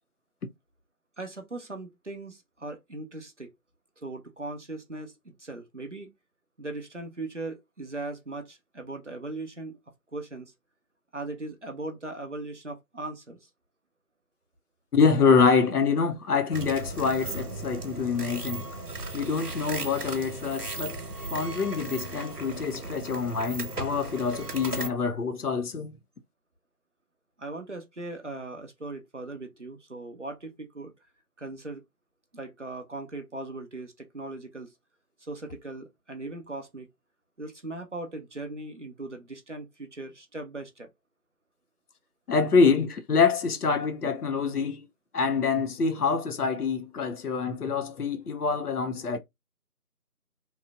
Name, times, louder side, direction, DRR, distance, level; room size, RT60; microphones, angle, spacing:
voice 1, 1.2-3.5 4.0-6.1 6.6-9.8 10.1-10.5 11.1-13.5 27.4-30.9 31.4-31.8 32.3-34.7 35.2-36.9 37.4-40.9, right 2 dB, 50° right, 0.5 m, -39 dB
voice 2, 14.9-18.7 19.1-21.0 21.3-26.0 42.3-44.9 45.1-49.2, left 5 dB, 75° left, 0.6 m, -25 dB
sound 1, 16.5-24.9, right 2 dB, 90° right, 0.9 m, -36 dB
3.0 x 2.0 x 2.3 m
figure-of-eight pair, 170°, 46 cm